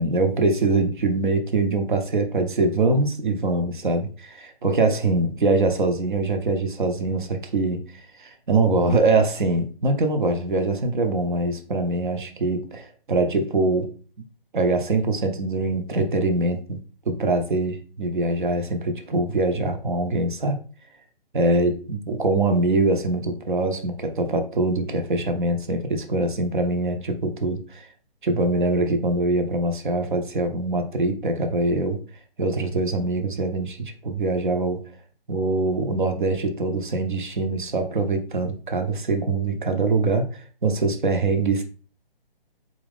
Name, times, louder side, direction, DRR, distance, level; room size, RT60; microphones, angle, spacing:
voice 1, 0.0-7.9 8.2-13.9 14.5-16.8 17.1-20.6 21.3-27.9 28.2-32.0 32.4-34.8 35.3-41.6, right 2 dB, 55° right, 5 dB, 0.8 m, -23 dB
3.7 x 3.0 x 3.4 m, 0.39 s
figure-of-eight pair, 140°, 29 cm